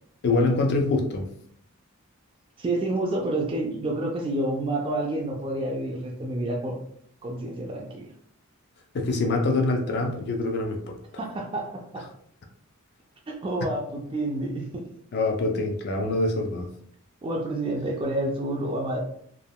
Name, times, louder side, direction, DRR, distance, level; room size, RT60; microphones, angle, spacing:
voice 1, 0.2-1.3 8.9-11.0 15.1-16.7, left 2 dB, 50° left, 2 dB, 0.4 m, -25 dB
voice 2, 2.6-6.8 7.2-8.1 11.2-12.1 13.3-14.9 17.2-19.0, right 1 dB, 25° right, -1 dB, 0.3 m, -29 dB
3.5 x 2.2 x 2.2 m, 0.65 s
head